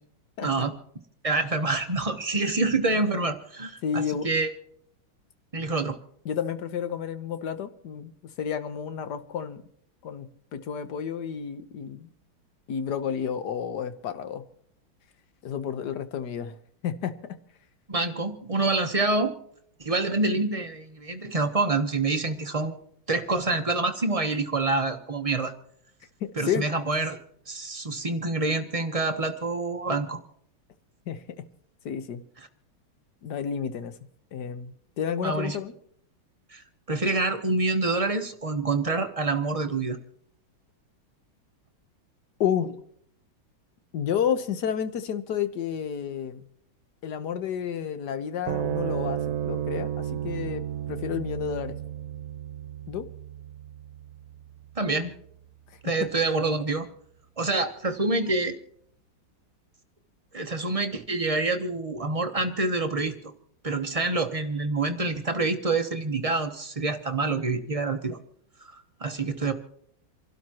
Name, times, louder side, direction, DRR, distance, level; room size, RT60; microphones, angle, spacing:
voice 1, 0.4-0.7 1.2-4.5 5.5-6.0 17.9-19.3 19.8-22.8 23.1-25.5 26.4-27.2 27.5-30.2 32.4-32.5 35.2-35.6 36.5-40.0 54.8-55.1 55.8-56.9 57.4-58.6 60.3-63.2 63.6-68.2 68.6-69.5, right 3 dB, 30° right, 6 dB, 0.6 m, -27 dB
voice 2, 3.8-4.3 6.2-8.1 8.4-9.6 10.0-10.3 10.5-12.1 12.7-14.4 15.4-16.6 16.8-17.1 26.2-26.7 31.1-31.2 31.8-32.2 33.2-33.9 34.3-35.7 42.4-42.8 43.9-46.4 47.0-50.6 50.9-51.8 52.9-53.0, left 8 dB, 60° left, 10 dB, 1.5 m, -30 dB
sound 1, 48.5-55.1, right 10 dB, 70° right, 1.5 m, -33 dB
28.0 x 12.5 x 2.9 m, 0.67 s
omnidirectional pair, 2.2 m